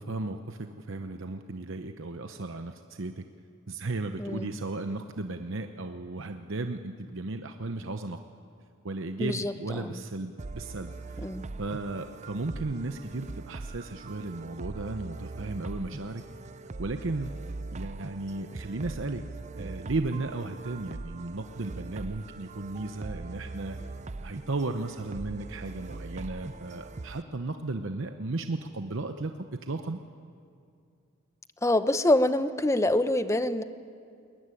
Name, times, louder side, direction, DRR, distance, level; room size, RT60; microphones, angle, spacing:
voice 1, 0.0-3.2 3.7-8.2 8.8-11.3 11.6-16.2 16.8-17.3 17.7-19.2 19.6-23.8 24.2-29.3 29.6-30.0, right 2 dB, 60° right, 7 dB, 0.9 m, -35 dB
voice 2, 9.2-10.0 11.2-11.4 31.6-33.6, left 1 dB, 15° left, 12 dB, 0.7 m, -26 dB
sound 1, 10.4-27.2, right 3 dB, 35° right, 0.5 m, -41 dB
21.0 x 20.0 x 9.9 m, 2.4 s
head